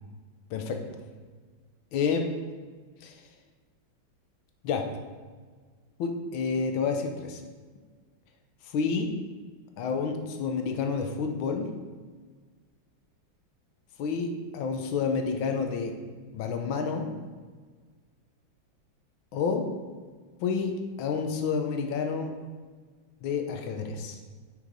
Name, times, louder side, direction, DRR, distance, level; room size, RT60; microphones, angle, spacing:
voice 1, 0.5-0.8 1.9-2.3 3.0-3.1 4.6-4.9 6.0-7.4 8.6-9.1 9.8-11.7 14.0-15.9 16.3-17.1 19.3-19.7 20.4-22.4 23.2-24.2, left 5 dB, 85° left, 5 dB, 1.6 m, -29 dB
9.0 x 4.9 x 5.2 m, 1.5 s
omnidirectional pair, 2.2 m